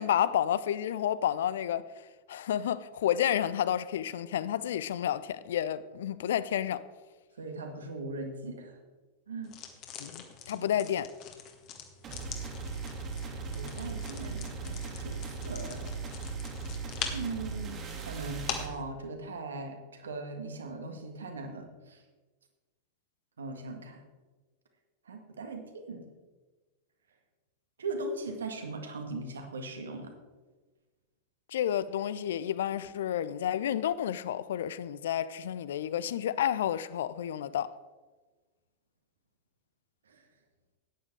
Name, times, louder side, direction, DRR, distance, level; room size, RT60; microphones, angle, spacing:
voice 1, 0.0-1.8 2.3-6.8 10.0-11.1 31.5-37.7, left 10 dB, 60° left, 0.5 m, -30 dB
voice 2, 7.4-8.8 9.3-9.6 10.5-10.7 13.3-15.8 17.1-22.0 23.4-24.0 25.1-26.1 27.8-30.1 40.1-40.2, right 3 dB, 70° right, 1.7 m, -39 dB
sound 1, 9.4-18.8, left 8 dB, 40° left, 1.7 m, -43 dB
sound 2, 12.0-18.7, right 4 dB, 30° right, 2.3 m, -38 dB
13.5 x 9.7 x 4.7 m
figure-of-eight pair, 90°, 0 cm